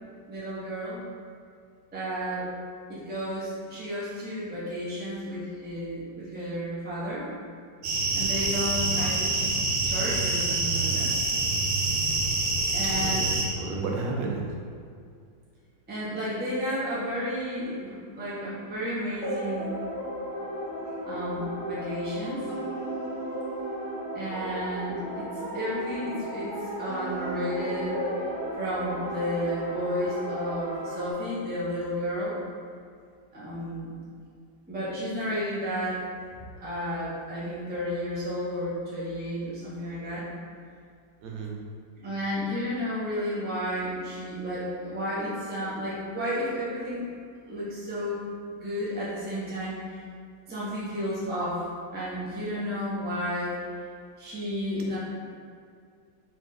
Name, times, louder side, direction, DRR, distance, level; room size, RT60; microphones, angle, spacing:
voice 1, 0.3-1.0 1.9-2.5 2.9-7.3 8.1-9.5 9.9-11.1 12.7-13.4 15.9-19.8 21.0-22.5 24.1-25.3 25.5-26.5 26.8-28.0 28.5-32.4 33.3-33.9 34.7-36.0 36.3-40.2 42.0-47.1 47.5-48.2 48.5-49.8 50.5-51.6 51.9-53.6 54.2-55.0, equal, 15° right, -9 dB, 0.3 m, -32 dB
sound 1, 7.8-13.5, right 3 dB, 65° right, 1.0 m, -26 dB
voice 2, 13.0-14.4 41.2-41.5, right 3 dB, 85° right, -1 dB, 1.4 m, -32 dB
sound 2, 19.2-31.1, right 1 dB, 70° left, 0.4 m, -34 dB
3.8 x 3.1 x 3.2 m, 2.3 s
omnidirectional pair, 2.0 m